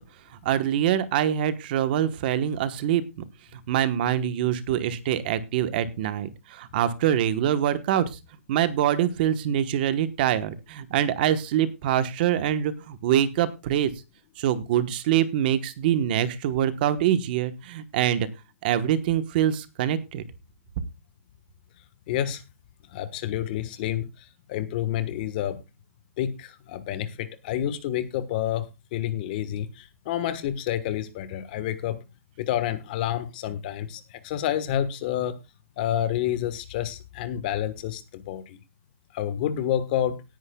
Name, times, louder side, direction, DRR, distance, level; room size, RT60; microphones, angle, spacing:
voice 1, 0.4-3.0 3.5-8.1 8.5-13.9 14.4-18.3 18.6-20.2, right 10 dB, 35° right, 12 dB, 1.1 m, -24 dB
voice 2, 22.1-22.4 22.9-25.6 26.2-32.0 32.4-35.4 35.8-38.6 39.1-40.2, left 11 dB, 35° left, 13 dB, 1.3 m, -29 dB
18.5 x 10.0 x 2.3 m, 0.25 s
hypercardioid pair, 160°, 8 cm